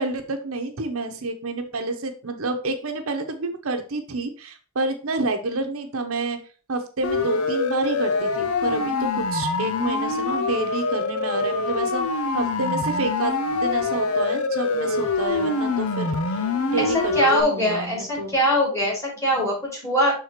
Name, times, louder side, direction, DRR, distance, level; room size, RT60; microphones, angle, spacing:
voice 1, 0.0-6.4 6.7-12.0 12.3-18.4, right 3 dB, 75° right, 6 dB, 0.9 m, -29 dB
Siren, 7.0-17.4, left 3 dB, 85° left, 0.7 m, -25 dB
voice 2, 16.8-20.2, equal, 15° left, -5 dB, 3.7 m, -22 dB
6.6 x 3.7 x 4.4 m, 0.36 s
head